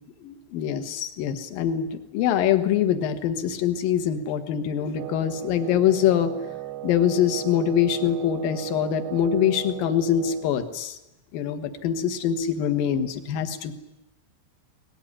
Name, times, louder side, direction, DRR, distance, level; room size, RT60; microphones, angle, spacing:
voice 1, 0.2-6.3 6.8-11.0 11.3-13.7, left 9 dB, 65° left, 8 dB, 2.5 m, -24 dB
Wind instrument woodwind instrument, 4.9-10.6, right 16 dB, 75° right, 2.6 m, -37 dB
22.5 x 19.5 x 10.0 m, 0.93 s
omnidirectional pair, 5.8 m